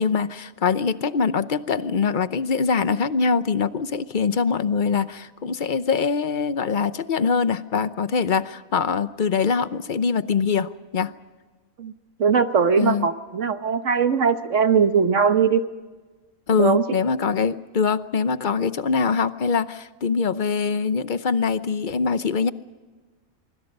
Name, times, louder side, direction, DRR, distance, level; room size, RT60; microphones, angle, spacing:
voice 1, 0.0-11.1 12.8-13.1 16.5-22.5, left 5 dB, 45° left, 13 dB, 0.8 m, -23 dB
voice 2, 12.2-15.6 16.6-17.0, right 6 dB, 60° right, 10 dB, 1.4 m, -20 dB
25.0 x 24.0 x 5.4 m, 1.3 s
omnidirectional pair, 1.5 m